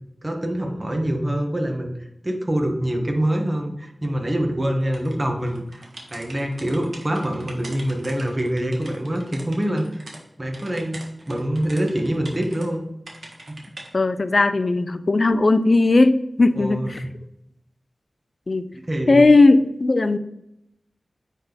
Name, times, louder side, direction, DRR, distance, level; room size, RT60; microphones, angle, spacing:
voice 1, 0.2-2.0 2.2-10.0 10.4-12.8 13.5-13.6 16.5-17.1 18.7-19.2, right 1 dB, 30° right, 2 dB, 1.5 m, -25 dB
sound 1, 4.9-10.2 10.5-12.7 13.1-13.9, right 2 dB, 65° right, 1.4 m, -42 dB
voice 2, 13.9-17.0 18.5-18.7 19.1-20.2, left 3 dB, 60° left, 12 dB, 0.5 m, -17 dB
8.8 x 3.7 x 4.0 m, 0.81 s
cardioid pair, 50°, 0 cm